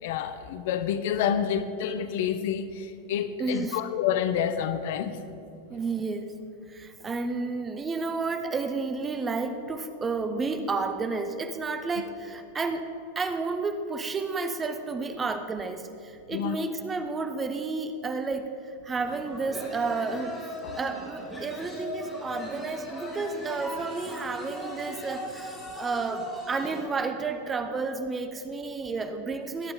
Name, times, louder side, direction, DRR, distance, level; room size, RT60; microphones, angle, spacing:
voice 1, 0.0-5.2 16.3-16.6 20.6-20.8, left 8 dB, 50° left, 11 dB, 0.7 m, -28 dB
voice 2, 3.4-3.8 5.7-6.3 6.7-20.4 20.7-29.7, right 4 dB, 20° right, 8 dB, 0.9 m, -31 dB
sound 1, 19.0-26.9, equal, 15° left, 3.1 m, -38 dB
22.0 x 9.9 x 3.7 m, 2.5 s
figure-of-eight pair, 90°, 0 cm